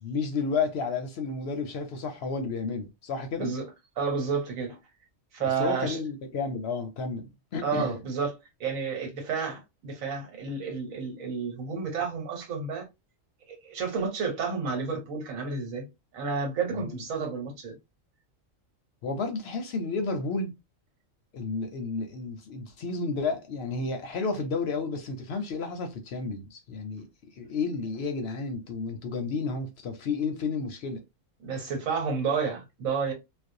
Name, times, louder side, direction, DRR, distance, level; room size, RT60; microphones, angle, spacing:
voice 1, 0.0-3.5 5.6-7.9 16.7-17.0 19.0-20.5 21.3-27.1 27.4-31.0, left 4 dB, 65° left, 0.7 m, -31 dB
voice 2, 4.0-4.8 5.3-6.0 7.6-12.9 13.5-15.9 16.1-17.8 31.4-33.1, right 5 dB, 90° right, 1.3 m, -31 dB
2.5 x 2.0 x 2.5 m
omnidirectional pair, 1.4 m